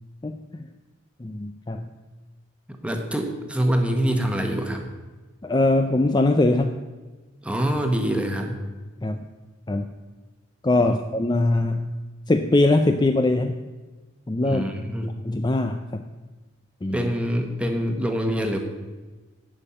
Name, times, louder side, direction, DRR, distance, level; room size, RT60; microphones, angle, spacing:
voice 1, 0.2-0.7 1.2-1.9 5.4-6.8 9.0-9.3 9.7-9.9 10.6-11.9 12.3-13.6 14.3-14.6 15.0-16.1 16.8-17.1, left 2 dB, 20° left, 7 dB, 0.4 m, -22 dB
voice 2, 2.7-4.9 7.4-8.6 10.8-11.0 14.4-15.1 16.9-18.6, equal, 5° right, 4 dB, 1.1 m, -25 dB
11.0 x 5.5 x 8.6 m, 1.3 s
head